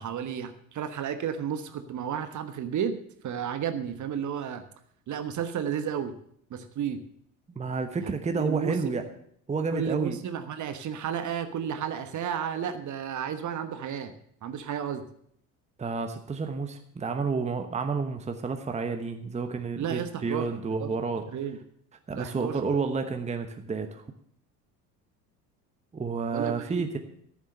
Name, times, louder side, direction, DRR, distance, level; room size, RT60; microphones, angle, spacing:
voice 1, 0.0-3.0 3.2-4.7 5.1-6.1 6.5-7.0 8.0-8.8 9.7-14.1 14.4-15.0 19.8-20.9 21.3-21.6 22.1-22.6 26.3-26.8, right 8 dB, 35° right, 9 dB, 1.3 m, -32 dB
voice 2, 7.5-9.0 9.5-10.2 15.8-21.3 22.1-24.0 25.9-27.0, right 4 dB, 15° right, 6 dB, 1.1 m, -30 dB
14.0 x 7.4 x 6.6 m, 0.67 s
figure-of-eight pair, 65°, 50 cm